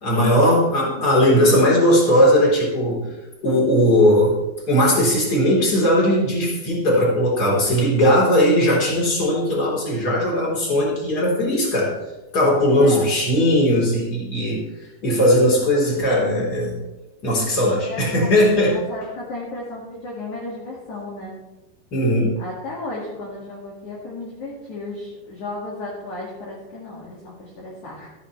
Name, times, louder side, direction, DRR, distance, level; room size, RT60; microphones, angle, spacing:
voice 1, 0.0-3.1 3.4-4.4 4.7-12.0 12.3-14.6 15.0-16.7 17.2-18.8 21.9-22.4, equal, 25° left, -4 dB, 3.5 m, -18 dB
voice 2, 12.8-13.1 17.9-18.4 18.6-21.4 22.4-28.1, left 2 dB, 50° left, -4 dB, 2.7 m, -34 dB
13.0 x 12.0 x 3.2 m, 1.1 s
omnidirectional pair, 5.3 m